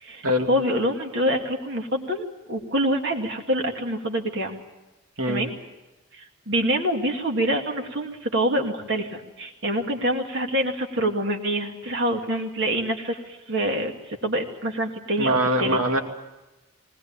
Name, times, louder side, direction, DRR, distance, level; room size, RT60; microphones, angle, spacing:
voice 1, 0.5-4.6 5.3-5.5 6.1-13.9 14.2-15.8, equal, 55° right, 2 dB, 2.2 m, -26 dB
voice 2, 15.2-16.0, equal, 90° right, 3 dB, 2.6 m, -22 dB
20.0 x 20.0 x 8.7 m, 1.1 s
head